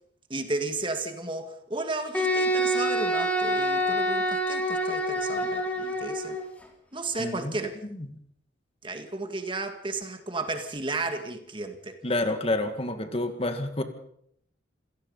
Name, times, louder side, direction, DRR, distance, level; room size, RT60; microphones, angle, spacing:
voice 1, 0.3-6.4 6.9-7.8 8.8-12.0, right 3 dB, 25° right, 6 dB, 2.1 m, -33 dB
Wind instrument woodwind instrument, 2.1-6.4, equal, 10° left, 3.3 m, -26 dB
voice 2, 7.2-7.5 12.0-13.8, left 2 dB, 30° left, 7 dB, 2.0 m, -28 dB
27.5 x 17.0 x 5.5 m, 0.69 s
head